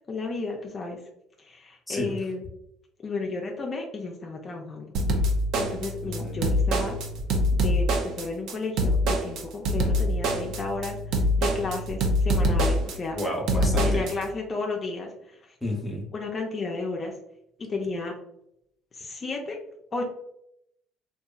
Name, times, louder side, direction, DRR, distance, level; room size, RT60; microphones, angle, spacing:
voice 1, 0.1-1.0 1.4-2.4 3.0-4.9 5.5-6.9 7.5-11.0 11.4-13.2 13.8-15.4 16.1-17.1 17.6-18.1 18.9-19.6 19.9-20.1, left 3 dB, 35° left, 1 dB, 0.4 m, -32 dB
sound 1, 4.9-14.1, equal, 65° right, 0.5 m, -24 dB
voice 2, 6.0-6.4 13.1-14.0 15.6-16.0, left 1 dB, 15° left, -1 dB, 0.8 m, -31 dB
2.7 x 2.3 x 2.3 m, 0.78 s
supercardioid pair, 80°, 0 cm